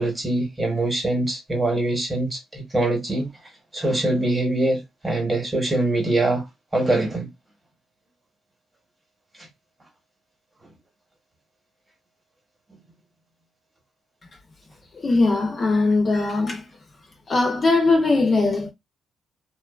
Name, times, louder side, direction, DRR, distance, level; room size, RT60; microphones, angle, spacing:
voice 1, 0.0-3.3 3.7-6.5 6.7-7.3 9.4-9.5, right 2 dB, 20° right, 1.0 m, -23 dB
voice 2, 14.9-16.7 17.3-18.7, left 3 dB, 35° left, 0.6 m, -20 dB
2.5 x 2.2 x 2.4 m
cardioid pair, 120°, 0 cm